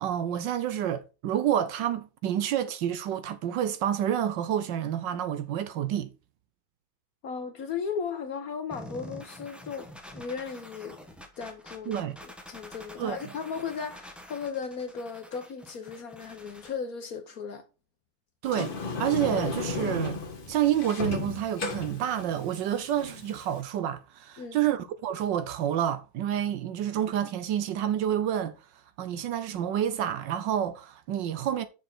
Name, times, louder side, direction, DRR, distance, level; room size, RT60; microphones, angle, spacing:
voice 1, 0.0-6.1 11.9-12.2 13.0-13.3 18.4-20.2 20.5-28.6 29.0-31.6, right 10 dB, 70° right, 1.3 m, -29 dB
voice 2, 7.2-9.9 10.1-11.0 11.4-17.6 24.4-24.6, left 6 dB, 55° left, 1.1 m, -36 dB
sound 1, 8.7-16.7, equal, ahead, 0.8 m, -47 dB
Sliding door, 18.4-23.6, left 4 dB, 35° left, 1.0 m, -34 dB
6.8 x 6.6 x 4.4 m
omnidirectional pair, 2.2 m